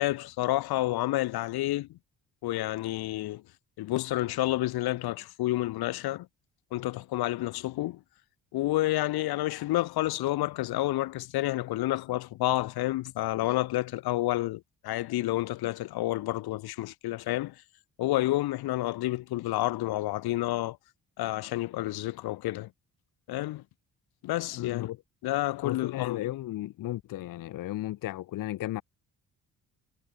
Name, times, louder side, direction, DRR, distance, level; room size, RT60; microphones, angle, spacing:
voice 1, 0.0-2.0 2.4-3.4 3.8-6.3 6.7-8.0 8.5-17.5 18.0-20.8 21.2-22.7 23.3-23.6 24.2-24.9 25.2-26.2, left 16 dB, 85° left, 1.0 m, -29 dB
voice 2, 24.5-25.0 25.6-28.8, left 15 dB, 60° left, 0.5 m, -34 dB
cardioid pair, 80°, 37 cm